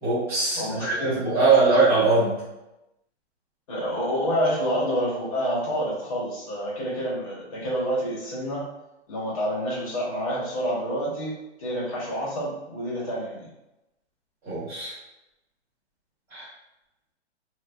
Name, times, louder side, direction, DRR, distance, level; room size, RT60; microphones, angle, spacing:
voice 1, 0.0-2.4 14.4-14.9 16.3-16.5, right 3 dB, 5° right, -15 dB, 0.9 m, -22 dB
voice 2, 0.5-1.8 3.7-8.6 9.1-13.4, equal, 30° left, -6 dB, 0.9 m, -28 dB
3.1 x 2.3 x 2.2 m, 0.93 s
hypercardioid pair, 170°, 35 cm